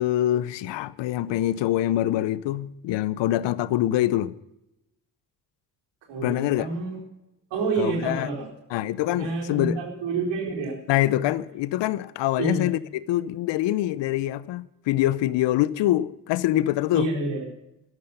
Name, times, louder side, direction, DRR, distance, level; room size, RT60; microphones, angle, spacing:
voice 1, 0.0-4.3 6.2-6.7 7.8-8.3 8.7-9.8 10.9-17.1, left 14 dB, 75° left, 0.8 m, -25 dB
voice 2, 6.1-7.0 7.5-8.5 9.2-10.7 12.4-12.7 16.9-17.4, right 3 dB, 75° right, 4.2 m, -28 dB
13.0 x 12.5 x 5.5 m
supercardioid pair, 50°, 43 cm